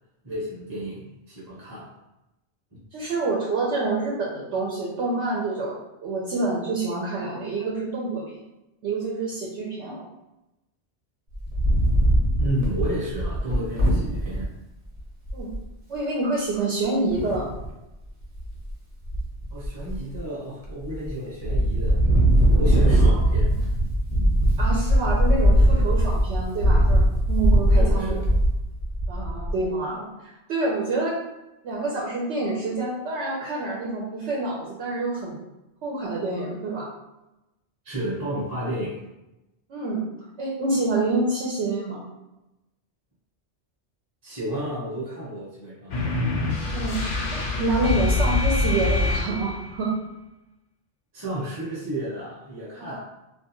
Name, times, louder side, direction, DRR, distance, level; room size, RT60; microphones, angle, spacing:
voice 1, 0.2-1.9 12.4-14.5 19.5-22.0 22.6-23.5 27.7-28.3 37.8-39.0 44.2-46.0 51.1-53.0, equal, 20° right, -9 dB, 0.7 m, -32 dB
voice 2, 2.9-8.2 8.8-10.0 15.3-15.5 15.9-17.5 23.0-23.1 24.6-27.0 27.3-28.2 29.1-30.1 30.5-31.2 31.6-35.4 35.8-36.9 39.7-40.1 40.4-42.0 46.7-47.0 47.3-49.9 52.8-53.0, right 2 dB, 75° right, -4 dB, 0.9 m, -27 dB
Wind, 11.3-14.4 15.0-15.1 15.3-15.6 17.1-17.7 18.2-18.7 19.0-20.2 20.7-21.1 21.4-29.6, right 1 dB, 55° right, 0.9 m, -20 dB
sound 1, 45.9-49.7, left 3 dB, 60° left, 0.6 m, -25 dB
2.4 x 2.3 x 2.9 m, 0.96 s
omnidirectional pair, 1.2 m